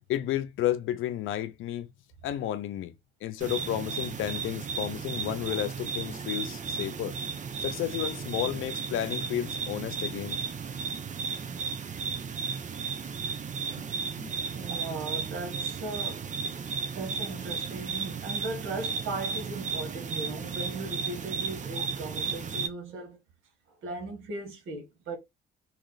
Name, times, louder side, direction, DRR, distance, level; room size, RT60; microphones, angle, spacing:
voice 1, 0.1-1.9 2.2-2.9 3.2-7.1 7.6-10.4 13.8-13.9 14.2-14.3, left 12 dB, 85° left, 0.6 m, -32 dB
sound 1, 3.4-22.7, right 5 dB, 40° right, 0.7 m, -34 dB
voice 2, 14.5-16.3 16.9-23.2 23.8-25.2, right 3 dB, 85° right, 1.5 m, -37 dB
3.1 x 3.0 x 3.9 m
cardioid pair, 90°, 20 cm